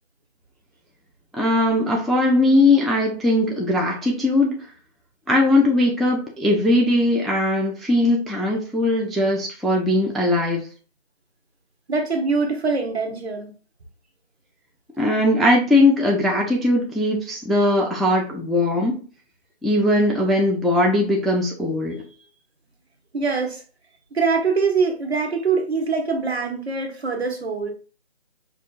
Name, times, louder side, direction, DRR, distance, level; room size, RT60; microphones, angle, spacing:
voice 1, 1.3-4.6 5.3-10.7 15.0-19.0 19.6-22.0, left 1 dB, ahead, 0.3 m, -19 dB
voice 2, 11.9-13.5 23.1-23.6 24.1-27.7, right 4 dB, 70° right, 1.1 m, -23 dB
5.5 x 2.5 x 2.4 m
figure-of-eight pair, 180°, 33 cm